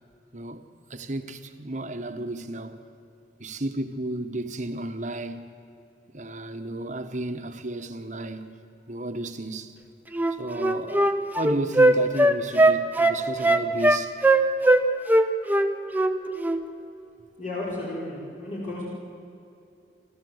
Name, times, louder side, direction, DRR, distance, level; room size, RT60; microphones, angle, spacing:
voice 1, 0.3-0.6 0.9-2.8 3.4-5.5 6.1-8.6 8.9-9.7 10.4-14.1, right 1 dB, 45° right, 1.3 m, -33 dB
Wind instrument woodwind instrument, 10.1-14.8 15.1-16.1 16.4-16.6, right 1 dB, 10° right, 0.8 m, -19 dB
voice 2, 17.4-18.8, left 2 dB, 45° left, 4.8 m, -33 dB
28.5 x 13.0 x 8.0 m
head